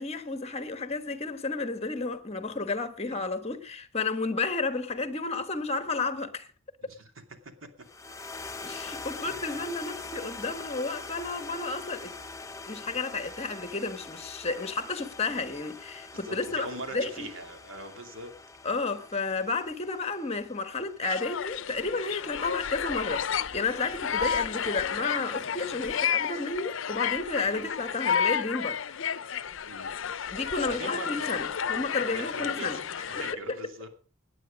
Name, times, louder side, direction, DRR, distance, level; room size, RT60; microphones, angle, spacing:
voice 1, 0.0-6.5 8.6-12.1 12.7-16.7 16.9-17.3 18.6-28.8 30.3-32.8 33.5-33.6, left 3 dB, 30° left, 1.3 m, -32 dB
sound 1, 7.8-22.3, left 3 dB, 15° left, 0.7 m, -43 dB
voice 2, 9.2-9.7 16.1-18.3 27.5-27.7 29.7-29.9 30.7-31.6 32.1-32.8 33.1-33.9, right 1 dB, 80° right, 2.6 m, -41 dB
sound 2, 21.0-33.3, left 7 dB, 65° left, 0.6 m, -31 dB
17.5 x 9.6 x 5.1 m
head